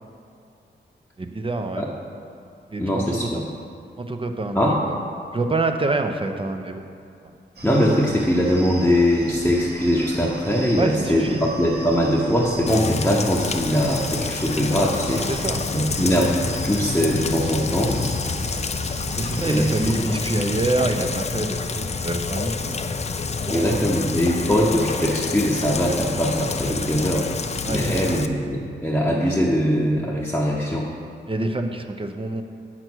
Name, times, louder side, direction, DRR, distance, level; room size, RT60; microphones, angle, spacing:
voice 1, 1.2-1.8 2.7-3.3 4.0-4.9 5.3-6.9 10.8-11.4 15.3-15.6 19.2-23.0 23.5-23.8 27.6-28.3 31.3-32.4, right 2 dB, 30° right, 6 dB, 0.6 m, -27 dB
voice 2, 2.8-3.4 4.5-4.8 7.6-16.4 16.6-17.9 19.4-20.0 23.5-27.3 27.7-30.9, equal, 5° left, -5 dB, 0.9 m, -21 dB
sound 1, 7.5-20.0, right 1 dB, 60° right, 1.5 m, -38 dB
Rain, 12.7-28.3, left 4 dB, 35° left, 0.5 m, -28 dB
7.9 x 6.0 x 6.2 m, 2.6 s
wide cardioid pair, 105°, 19 cm